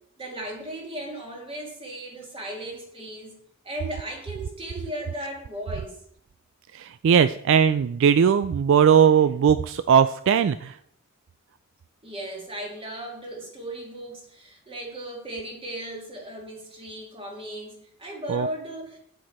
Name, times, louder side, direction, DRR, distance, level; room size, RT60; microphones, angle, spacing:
voice 1, 0.2-3.4 3.6-6.0 12.0-19.0, right 1 dB, 25° right, 0 dB, 2.1 m, -36 dB
voice 2, 6.7-10.8 18.3-18.5, right 7 dB, 65° right, 13 dB, 0.3 m, -19 dB
8.0 x 7.5 x 4.3 m, 0.68 s
head